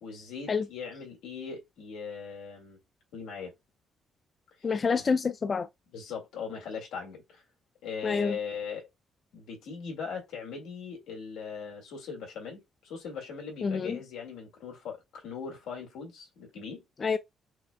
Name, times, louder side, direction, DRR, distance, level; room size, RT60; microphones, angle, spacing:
voice 1, 0.0-2.8 3.1-3.5 4.6-5.0 5.9-7.4 7.8-8.9 9.3-16.8, left 6 dB, 90° left, 2.0 m, -40 dB
voice 2, 4.6-5.7 8.0-8.4 13.6-14.0 17.0-17.2, left 5 dB, 40° left, 0.3 m, -27 dB
6.2 x 2.3 x 2.2 m
cardioid pair, 90°, 0 cm